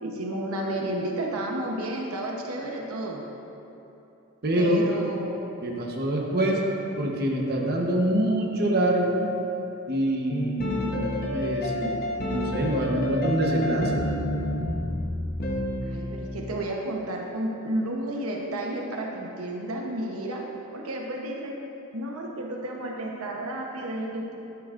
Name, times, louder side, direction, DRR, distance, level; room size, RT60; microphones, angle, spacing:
voice 1, 0.0-3.2 4.6-5.5 6.4-6.5 15.8-20.4 20.7-21.6 21.9-24.4, right 1 dB, 75° right, -1 dB, 1.0 m, -32 dB
voice 2, 4.4-4.9 5.6-6.6 7.0-9.3 9.9-14.0, right 1 dB, 45° right, -1 dB, 1.0 m, -25 dB
sound 1, 10.3-16.3, left 1 dB, 45° left, 1.0 m, -29 dB
11.5 x 10.5 x 2.5 m, 2.9 s
head